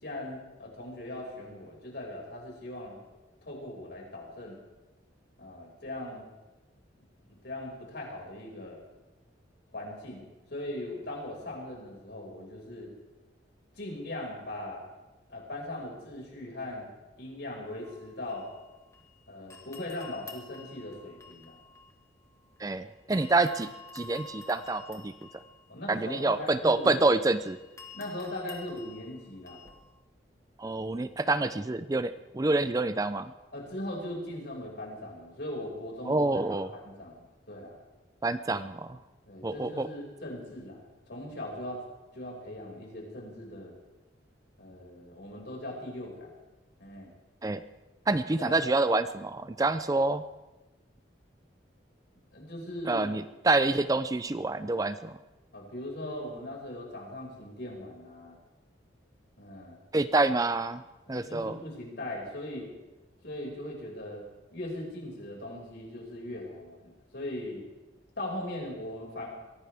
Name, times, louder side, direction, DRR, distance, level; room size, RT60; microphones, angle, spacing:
voice 1, 0.0-2.9 3.4-4.6 5.4-6.3 7.2-8.8 9.7-12.9 13.7-14.8 15.3-16.9 17.2-18.5 19.3-21.6 25.7-27.1 27.9-29.6 33.5-37.8 39.3-40.8 41.1-41.8 42.1-43.7 44.6-46.3 46.8-47.1 48.4-48.6 52.3-53.1 55.5-58.4 59.4-59.8 61.1-62.7 63.2-64.2 64.5-67.6 68.2-69.3, left 1 dB, 65° left, -2 dB, 5.6 m, -39 dB
sound 1, 17.7-19.2 19.5-22.7 23.1-29.9, left 4 dB, 15° left, 1.6 m, -50 dB
voice 2, 22.6-23.7 23.9-25.4 25.9-27.6 30.6-33.3 36.1-36.7 38.2-39.0 39.4-39.9 47.4-47.6 48.1-50.2 52.9-55.2 59.9-60.8 61.1-61.6, right 2 dB, 20° right, 12 dB, 0.4 m, -27 dB
23.0 x 17.0 x 3.5 m, 1.1 s
head